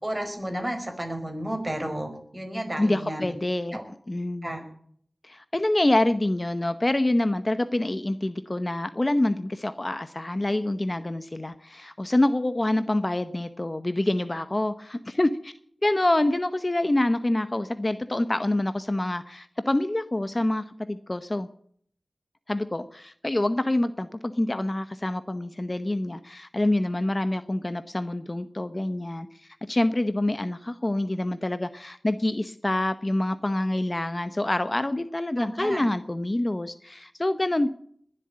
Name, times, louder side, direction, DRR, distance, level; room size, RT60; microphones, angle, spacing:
voice 1, 0.0-3.3 3.7-3.8 4.4-4.6 35.4-35.9, right 1 dB, 20° right, 4 dB, 4.8 m, -32 dB
voice 2, 2.8-3.8 4.1-4.5 5.2-15.5 15.8-21.5 22.5-37.7, left 1 dB, 35° left, 12 dB, 0.8 m, -26 dB
21.0 x 7.7 x 8.7 m, 0.63 s
wide cardioid pair, 65°, 0 cm